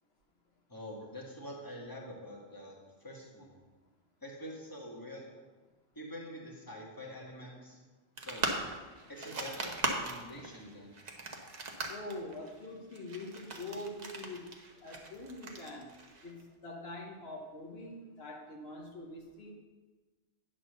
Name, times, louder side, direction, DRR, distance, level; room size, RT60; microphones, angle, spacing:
voice 1, 0.7-2.8 3.0-3.6 4.2-5.3 6.0-7.8 8.2-8.5 9.1-10.9, equal, 20° left, -3 dB, 1.8 m, -46 dB
sound 1, 8.2-16.4, right 3 dB, 40° right, 1.0 m, -39 dB
voice 2, 11.9-14.5 14.8-15.9 16.2-19.5, left 2 dB, 60° left, -1 dB, 1.4 m, -44 dB
9.4 x 4.2 x 6.6 m, 1.3 s
omnidirectional pair, 1.2 m